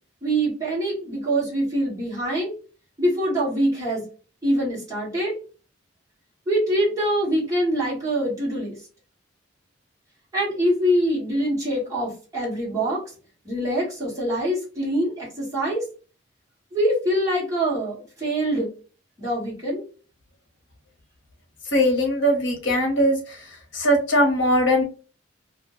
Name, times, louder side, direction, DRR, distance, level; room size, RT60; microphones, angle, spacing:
voice 1, 0.2-2.5 3.0-4.1 4.4-5.3 6.5-8.8 10.3-13.0 13.4-15.8 16.7-18.7 19.2-19.8, right 1 dB, 15° right, -7 dB, 1.4 m, -24 dB
voice 2, 21.7-23.5 23.7-24.8, equal, 65° left, 2 dB, 0.9 m, -20 dB
2.6 x 2.1 x 2.9 m, 0.37 s
head